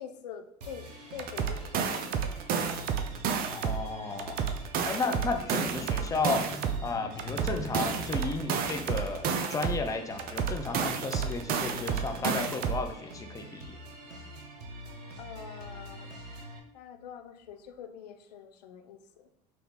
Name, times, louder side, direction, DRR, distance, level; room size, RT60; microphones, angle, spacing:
voice 1, 0.0-2.7 15.2-16.1 16.7-19.3, left 8 dB, 90° left, 8 dB, 0.4 m, -45 dB
sound 1, 0.6-16.6, equal, 85° right, 0.7 m, -45 dB
sound 2, 1.2-3.9 4.2-6.9 7.2-9.9 10.2-12.9, right 7 dB, 45° right, 0.5 m, -30 dB
voice 2, 3.5-4.4 4.8-13.8, left 4 dB, 15° left, 5 dB, 0.5 m, -33 dB
sound 3, 5.2-15.2 15.4-15.7 16.5-17.5, right 1 dB, 70° left, 1.0 m, -48 dB
5.1 x 2.3 x 3.1 m, 0.70 s
hypercardioid pair, 75°, 20 cm